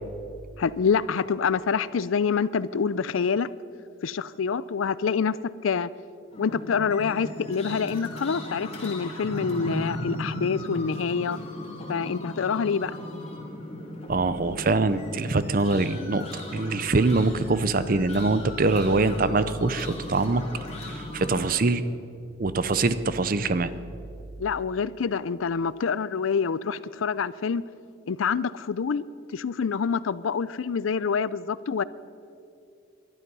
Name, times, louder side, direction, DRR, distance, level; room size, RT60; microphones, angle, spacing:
voice 1, 0.6-3.5 4.0-5.4 5.6-5.9 6.4-11.4 11.9-12.9 24.4-27.6 28.1-29.1 29.3-31.8, left 6 dB, 90° left, 18 dB, 0.5 m, -26 dB
sound 1, 6.3-21.5, left 1 dB, 35° left, 2.6 m, -37 dB
voice 2, 14.1-20.4 20.9-21.8 22.4-23.7, right 3 dB, 45° right, 13 dB, 0.6 m, -24 dB
21.5 x 11.5 x 5.5 m, 2.6 s
head